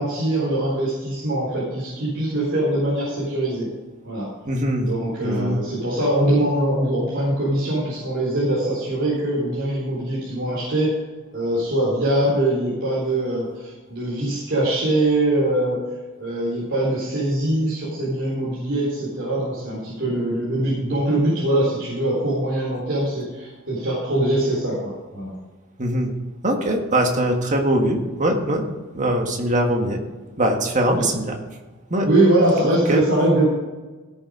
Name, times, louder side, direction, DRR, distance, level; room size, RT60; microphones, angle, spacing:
voice 1, 0.0-3.7 4.0-4.3 4.8-10.9 11.3-15.9 16.2-25.3 30.9-31.1 32.0-33.5, right 1 dB, 55° right, -7 dB, 3.9 m, -22 dB
voice 2, 4.5-4.9 5.2-5.6 25.8-26.1 26.4-28.7 28.9-30.0 30.4-31.4 31.9-32.1 32.6-33.0, right 1 dB, 35° right, 3 dB, 1.7 m, -22 dB
17.0 x 6.8 x 5.0 m, 1.3 s
head